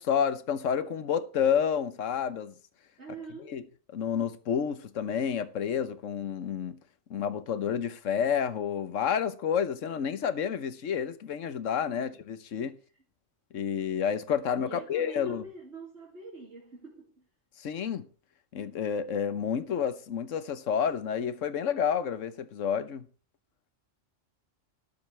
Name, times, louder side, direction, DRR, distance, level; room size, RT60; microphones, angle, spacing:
voice 1, 0.0-2.5 3.5-3.6 3.9-6.8 7.1-12.8 13.5-15.4 17.6-18.1 18.5-23.1, left 7 dB, 80° left, 1.3 m, -29 dB
voice 2, 3.0-3.5 12.0-12.2 14.6-17.3, right 3 dB, 60° right, 2.9 m, -44 dB
12.5 x 12.0 x 3.3 m
omnidirectional pair, 1.3 m